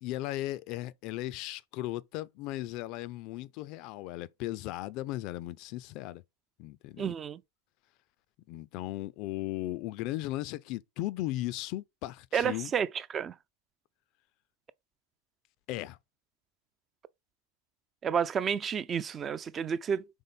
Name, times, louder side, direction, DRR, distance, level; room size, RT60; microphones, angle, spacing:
voice 1, 0.0-6.2 6.6-7.1 8.5-12.7 15.7-16.0, left 16 dB, 40° left, 0.4 m, -36 dB
voice 2, 7.0-7.4 12.3-13.3 18.0-20.1, right 7 dB, 25° right, 0.4 m, -30 dB
5.3 x 3.6 x 5.2 m
figure-of-eight pair, 90°, 0 cm